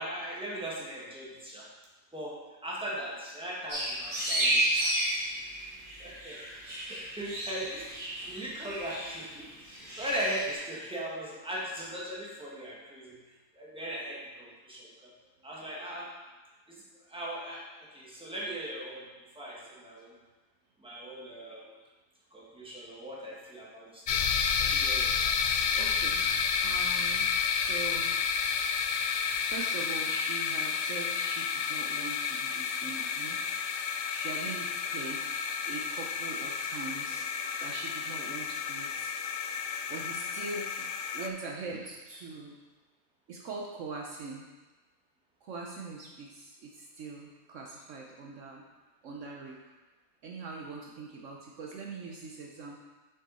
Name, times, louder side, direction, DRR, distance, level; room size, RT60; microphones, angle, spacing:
voice 1, 0.0-1.7 2.1-2.4 2.6-4.9 5.8-6.4 6.7-13.1 13.6-15.1 15.4-16.1 16.7-16.8 17.1-17.6 17.9-19.1 19.3-20.1 20.8-21.6 22.3-24.2 24.6-25.7, right 1 dB, 5° right, -6 dB, 1.5 m, -39 dB
sound 1, 3.7-10.5, right 1 dB, 85° right, 2.9 m, -32 dB
voice 2, 19.4-19.8 25.8-26.3 26.6-28.2 29.4-33.5 34.1-35.2 35.7-39.1 39.9-40.9 41.1-42.6 43.3-44.5 45.4-48.6 49.0-49.6 50.2-52.9, right 3 dB, 65° right, 0 dB, 1.0 m, -42 dB
sound 2, 24.1-41.3, left 6 dB, 75° left, 0.5 m, -31 dB
6.5 x 6.4 x 4.0 m, 1.2 s
omnidirectional pair, 1.5 m